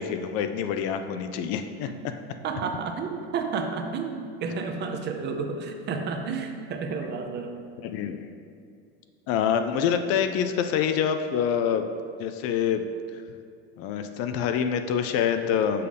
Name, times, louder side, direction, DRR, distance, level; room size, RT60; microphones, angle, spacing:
voice 1, 0.0-2.1 7.8-8.2 9.3-11.9 12.2-12.8 13.8-15.9, left 8 dB, 50° left, 8 dB, 0.4 m, -26 dB
voice 2, 2.4-7.6, right 5 dB, 35° right, 4 dB, 0.6 m, -31 dB
6.8 x 5.1 x 3.4 m, 2.5 s
supercardioid pair, 125°, 31 cm